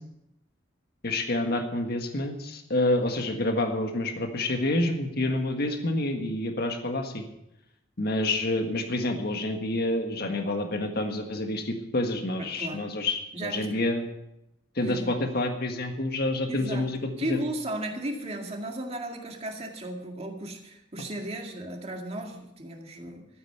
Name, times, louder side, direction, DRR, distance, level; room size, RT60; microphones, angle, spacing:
voice 1, 1.0-7.2 8.0-14.0 14.7-17.4, left 2 dB, 55° left, 5 dB, 1.6 m, -28 dB
voice 2, 12.4-12.9 13.3-13.7 14.8-15.1 16.5-16.9 17.2-23.3, right 1 dB, 35° right, 2 dB, 2.1 m, -35 dB
13.5 x 9.2 x 6.8 m, 0.86 s
head